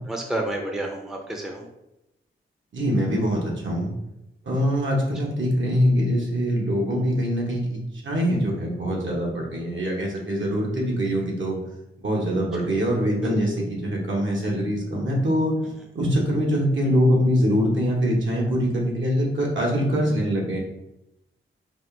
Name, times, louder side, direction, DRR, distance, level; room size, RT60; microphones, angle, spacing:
voice 1, 0.1-1.7 12.5-12.7 13.2-13.4 15.8-15.9, right 1 dB, ahead, 1 dB, 0.5 m, -30 dB
voice 2, 2.7-3.9 4.4-11.6 12.0-15.5 15.9-20.6, equal, 65° right, -1 dB, 1.1 m, -23 dB
4.2 x 2.4 x 3.3 m, 0.88 s
wide cardioid pair, 100°, 21 cm